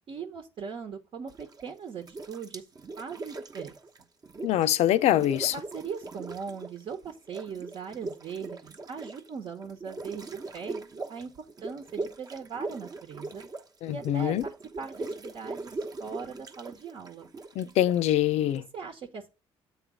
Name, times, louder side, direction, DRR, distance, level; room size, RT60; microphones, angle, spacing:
voice 1, 0.1-2.6 3.0-3.8 5.5-10.8 11.1-13.4 13.9-17.3 18.7-19.3, right 6 dB, 55° right, 1.1 m, -40 dB
sound 1, 1.3-1.7 2.0-4.8 5.0-6.8 7.1-18.6, right 3 dB, 35° right, 1.0 m, -40 dB
voice 2, 4.4-5.5 13.8-14.4 17.6-18.6, left 12 dB, 75° left, 0.5 m, -24 dB
8.2 x 3.3 x 6.1 m
cardioid pair, 90°, 11 cm